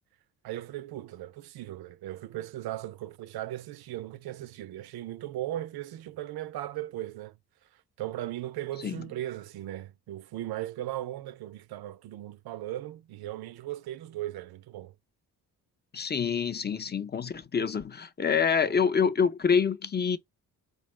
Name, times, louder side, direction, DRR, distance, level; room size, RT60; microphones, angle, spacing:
voice 1, 0.4-7.4 8.0-14.9, right 14 dB, 80° right, 0.5 m, -37 dB
voice 2, 15.9-20.2, left 6 dB, 30° left, 0.6 m, -26 dB
4.3 x 2.3 x 3.1 m
cardioid pair, 70°, 36 cm